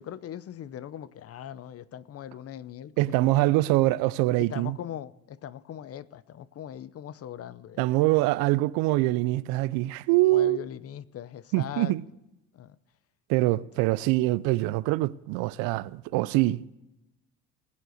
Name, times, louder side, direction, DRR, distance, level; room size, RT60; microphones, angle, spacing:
voice 1, 0.0-3.5 4.4-7.9 10.3-12.0 12.5-12.8 13.5-13.9, left 10 dB, 45° left, 0.7 m, -40 dB
voice 2, 3.0-4.8 7.8-10.6 11.5-12.0 13.3-16.6, right 18 dB, 75° right, 0.6 m, -24 dB
19.5 x 8.2 x 6.4 m
supercardioid pair, 85°, 35 cm